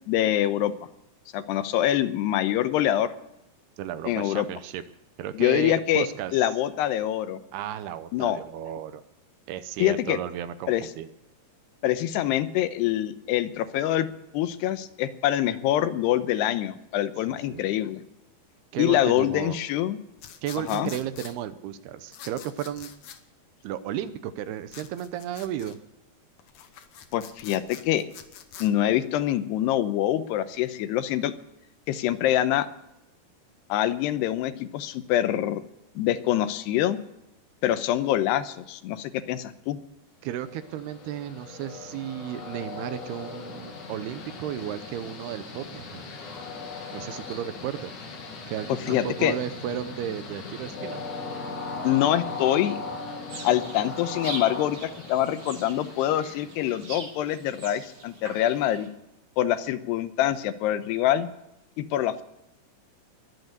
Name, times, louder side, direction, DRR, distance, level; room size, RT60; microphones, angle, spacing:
voice 1, 0.1-0.7 1.3-3.1 4.1-4.5 5.3-6.1 6.3-7.4 8.1-8.4 9.8-10.2 10.7-10.9 11.8-14.1 14.3-18.0 18.8-20.0 20.7-20.9 27.1-28.1 28.6-31.3 31.9-32.7 33.7-35.6 36.0-37.0 37.6-39.8 48.9-49.4 51.8-52.8 53.4-58.9 59.4-61.3 61.8-62.2, left 12 dB, 90° left, 11 dB, 2.9 m, -25 dB
voice 2, 3.8-4.8 5.2-6.4 7.5-9.0 9.5-11.1 17.3-17.6 18.7-19.6 20.4-22.9 23.6-25.8 40.2-46.1 46.9-47.9 48.5-51.0, right 10 dB, 80° right, 12 dB, 2.7 m, -34 dB
sound 1, 20.2-21.3 22.1-23.2 24.7-25.8 26.4-28.7, left 9 dB, 70° left, 1.7 m, -45 dB
Train, 40.4-57.2, left 3 dB, 50° left, 3.4 m, -39 dB
sound 2, 53.3-58.9, right 3 dB, 35° right, 3.2 m, -42 dB
22.0 x 8.2 x 6.7 m, 0.88 s
omnidirectional pair, 4.8 m